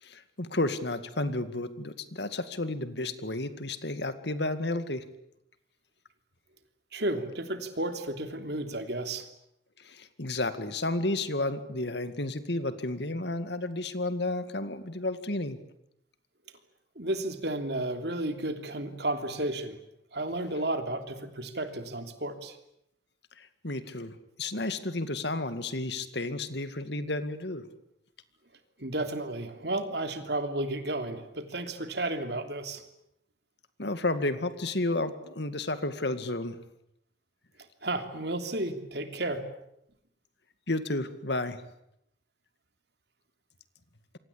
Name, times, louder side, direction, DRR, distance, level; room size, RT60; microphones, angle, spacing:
voice 1, 0.0-5.0 9.8-15.6 23.4-27.7 33.8-36.6 40.7-41.6, left 2 dB, 65° left, 11 dB, 2.1 m, -32 dB
voice 2, 6.9-9.3 16.9-19.8 20.1-22.6 28.8-32.8 37.8-39.5, right 1 dB, 60° right, 7 dB, 3.1 m, -32 dB
27.5 x 24.0 x 8.7 m, 0.79 s
head